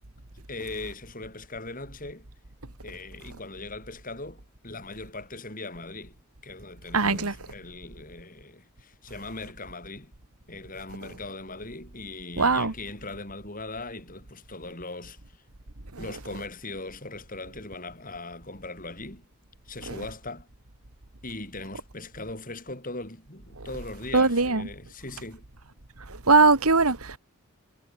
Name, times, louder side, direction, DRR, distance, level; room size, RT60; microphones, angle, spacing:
voice 1, 0.5-2.3 2.8-6.2 6.4-10.1 10.5-15.2 16.0-19.3 19.7-20.5 21.2-25.4, left 2 dB, 40° left, 6.9 m, -39 dB
voice 2, 6.9-7.3 12.4-12.7 24.1-24.7 26.3-27.2, right 4 dB, 80° right, 2.2 m, -20 dB
head